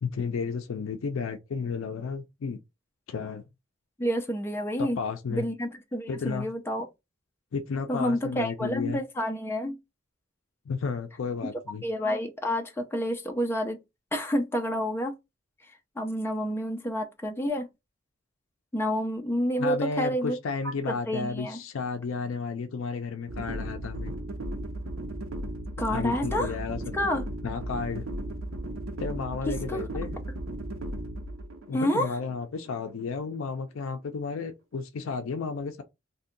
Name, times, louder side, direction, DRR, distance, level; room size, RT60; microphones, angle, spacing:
voice 1, 0.0-2.6 3.1-3.4 4.8-5.5 6.1-6.5 7.5-9.0 10.7-11.8 19.6-24.1 25.9-26.9 27.4-28.1 29.0-30.2 31.7-35.8, left 5 dB, 75° left, 0.4 m, -32 dB
voice 2, 4.0-5.0 5.3-6.9 7.9-9.8 11.8-13.8 14.1-15.1 16.0-17.7 18.7-20.4 20.9-21.6 25.8-26.5 26.9-27.2 29.5-29.8 31.7-32.1, equal, 10° left, 0.4 m, -29 dB
sound 1, 23.3-33.3, right 1 dB, 75° right, 0.6 m, -36 dB
2.6 x 2.2 x 3.7 m
head